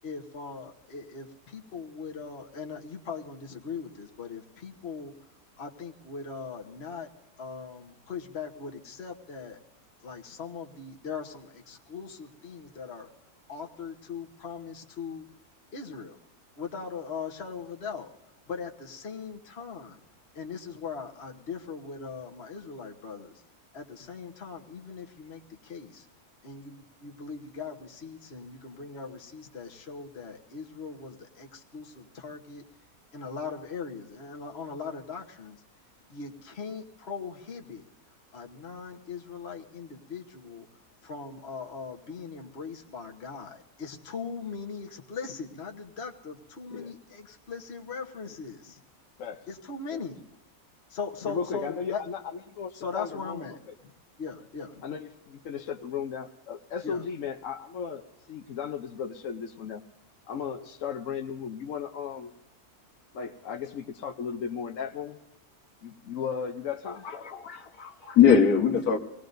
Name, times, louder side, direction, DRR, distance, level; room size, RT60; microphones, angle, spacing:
voice 1, 0.0-5.1 5.6-7.1 7.4-9.6 10.0-13.1 13.5-15.2 15.7-16.2 16.6-18.1 18.5-20.0 20.3-23.4 23.7-26.1 26.4-32.6 33.1-35.6 36.1-37.8 38.3-40.7 41.0-48.8 49.5-50.2 50.9-52.0 52.7-53.6 53.8-53.9 54.2-54.8 56.8-57.0, left 5 dB, 45° left, 1.4 m, -39 dB
voice 2, 51.2-53.6 54.8-58.0 58.3-59.8 60.3-62.3 63.1-65.2 65.8-67.0, left 7 dB, 65° left, 1.1 m, -35 dB
voice 3, 67.0-69.0, left 7 dB, 80° left, 1.7 m, -22 dB
25.5 x 18.5 x 2.6 m
omnidirectional pair, 1.6 m